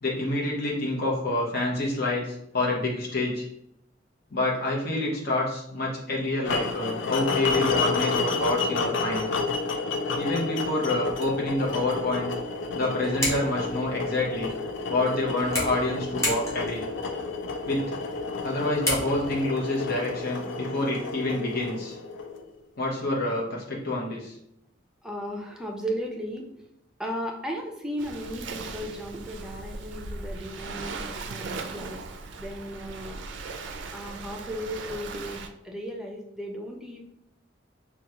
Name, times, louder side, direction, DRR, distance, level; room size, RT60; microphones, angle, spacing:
voice 1, 0.0-3.4 4.3-9.3 10.2-12.3 12.7-14.5 14.9-16.8 17.7-17.9 18.4-22.0 22.8-24.3, left 2 dB, 55° left, -4 dB, 0.8 m, -27 dB
sound 1, 6.4-22.6, left 3 dB, 70° left, 0.4 m, -30 dB
sound 2, 11.0-19.5, left 1 dB, 15° left, 0.9 m, -36 dB
voice 2, 25.0-26.5 27.0-32.0 32.4-33.2 33.9-37.0, equal, 5° right, 0 dB, 0.4 m, -35 dB
Waves surf, 28.0-35.5, right 3 dB, 70° right, 0.4 m, -38 dB
3.5 x 2.3 x 2.8 m, 0.76 s
head